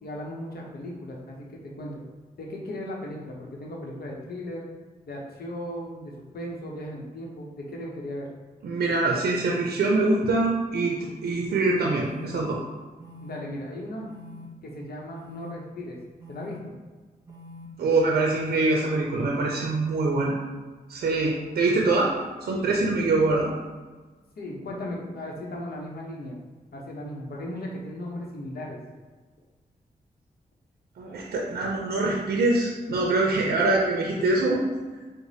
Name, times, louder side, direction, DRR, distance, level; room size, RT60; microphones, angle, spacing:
voice 1, 0.0-2.0 2.4-4.6 5.1-8.3 13.2-14.1 14.6-16.0 16.3-16.7 24.4-26.4 26.7-28.8 34.1-34.3, left 1 dB, 75° left, -1 dB, 0.8 m, -36 dB
voice 2, 8.6-12.6 17.8-20.4 20.9-22.1 22.4-23.5 31.0-34.6, right 2 dB, 75° right, -1 dB, 0.5 m, -24 dB
sound 1, 11.2-11.3 11.9-12.3 13.0-13.4 14.1-14.5 15.1-15.5 16.2-16.6 17.3-17.7 18.3-18.7, left 1 dB, 25° right, 0.9 m, -45 dB
4.8 x 2.1 x 2.7 m, 1.3 s
cardioid pair, 55°, 16 cm